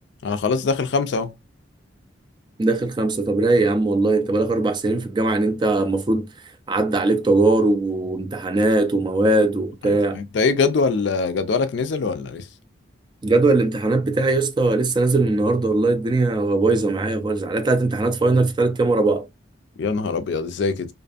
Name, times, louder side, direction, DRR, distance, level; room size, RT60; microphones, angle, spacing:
voice 1, 0.2-1.3 9.8-12.5 19.8-20.9, left 4 dB, 65° left, 0.4 m, -23 dB
voice 2, 2.6-6.3 6.7-10.2 13.2-19.2, right 2 dB, 25° right, 0.3 m, -20 dB
2.5 x 2.5 x 2.3 m
head